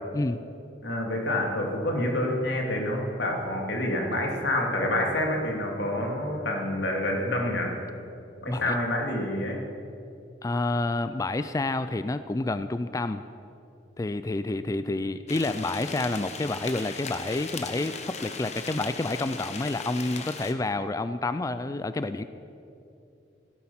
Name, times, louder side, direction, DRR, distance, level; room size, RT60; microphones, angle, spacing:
voice 1, 0.8-7.7 8.4-9.6, left 1 dB, 90° left, 0 dB, 2.7 m, -27 dB
voice 2, 10.4-13.2 14.0-22.2, left 2 dB, 20° left, 12 dB, 0.3 m, -29 dB
sound 1, 15.3-20.5, left 4 dB, 40° left, 1.1 m, -38 dB
16.0 x 12.5 x 5.7 m, 2.7 s
head